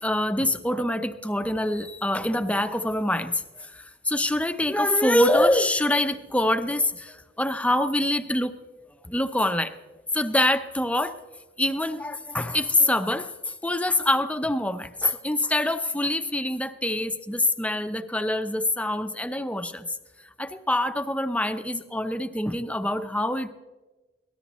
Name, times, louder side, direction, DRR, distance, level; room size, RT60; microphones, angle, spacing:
voice 1, 0.0-8.5 9.1-9.7 10.1-11.1 11.6-19.9 20.4-23.5, left 1 dB, 5° left, 9 dB, 0.7 m, -25 dB
24.0 x 18.0 x 3.1 m, 1.2 s
head